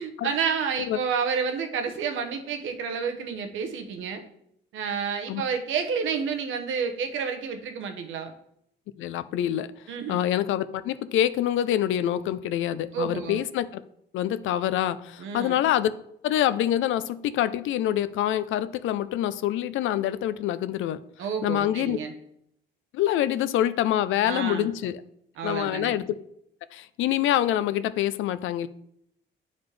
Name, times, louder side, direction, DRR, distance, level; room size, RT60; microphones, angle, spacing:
voice 1, 0.0-4.2 4.7-8.3 9.9-10.2 12.9-13.4 15.2-15.6 21.2-22.1 24.2-24.7 25.4-26.0, right 6 dB, 80° right, 5 dB, 0.9 m, -30 dB
voice 2, 9.0-9.7 10.1-13.8 14.1-15.9 16.2-21.0 21.4-22.0 22.9-25.0 25.4-26.1 26.7-28.7, left 12 dB, 80° left, 14 dB, 0.4 m, -26 dB
9.5 x 4.0 x 3.2 m, 0.75 s
cardioid pair, 90°, 20 cm